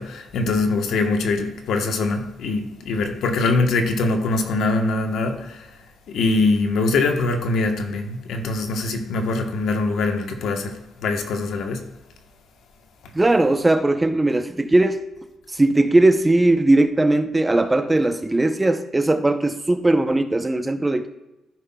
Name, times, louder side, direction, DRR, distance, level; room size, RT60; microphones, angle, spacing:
voice 1, 0.0-5.7 6.1-11.9, left 3 dB, 75° left, 1.0 m, -23 dB
voice 2, 13.1-15.0 15.5-21.1, right 2 dB, 15° right, 0.6 m, -19 dB
13.5 x 5.6 x 2.2 m
cardioid pair, 90°, 0 cm